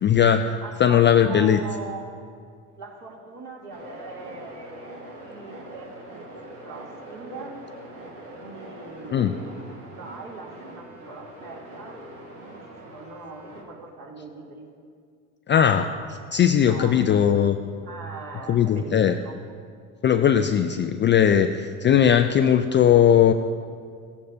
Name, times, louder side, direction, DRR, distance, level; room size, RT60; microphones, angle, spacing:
voice 1, 0.0-1.6 9.1-9.3 15.5-17.6 18.5-19.1 20.0-23.3, left 9 dB, 25° left, 7 dB, 0.4 m, -19 dB
voice 2, 0.6-2.1 2.8-4.9 5.2-7.6 8.3-12.0 12.5-14.7 16.3-17.5 17.8-19.4, right 3 dB, 45° right, -4 dB, 3.1 m, -41 dB
sound 1, 3.7-13.6, right 1 dB, 85° right, 2.2 m, -43 dB
16.0 x 9.4 x 2.8 m, 2.1 s
hypercardioid pair, 75°, 43 cm